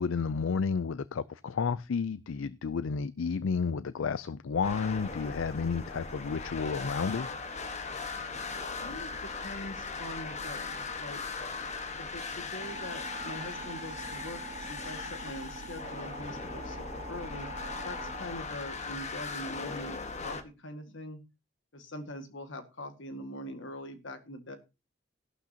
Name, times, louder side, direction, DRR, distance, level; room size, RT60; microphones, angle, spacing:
voice 1, 0.0-7.3, left 5 dB, 85° left, 17 dB, 0.5 m, -31 dB
sound 1, 4.6-20.4, left 4 dB, 40° left, 1.3 m, -39 dB
voice 2, 8.2-11.2 12.0-17.5 17.8-21.2 21.7-24.6, left 1 dB, 70° left, 8 dB, 1.9 m, -43 dB
sound 2, 12.6-18.2, right 2 dB, 35° right, 1.6 m, -44 dB
13.5 x 11.5 x 2.8 m, 0.28 s
head